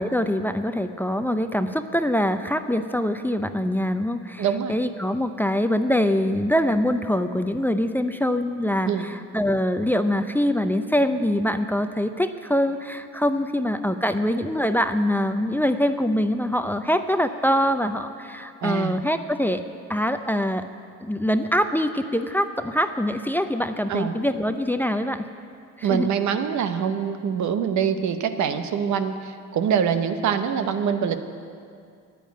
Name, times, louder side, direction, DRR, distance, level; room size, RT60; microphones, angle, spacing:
voice 1, 0.0-19.6 19.9-20.7 21.0-25.3 25.8-26.1, equal, 5° left, 9 dB, 0.5 m, -24 dB
voice 2, 4.4-4.8 8.8-9.1 18.6-19.0 23.9-24.1 25.8-31.2, right 7 dB, 70° right, 9 dB, 0.9 m, -24 dB
9.4 x 9.0 x 9.4 m, 2.3 s
cardioid pair, 90°, 30 cm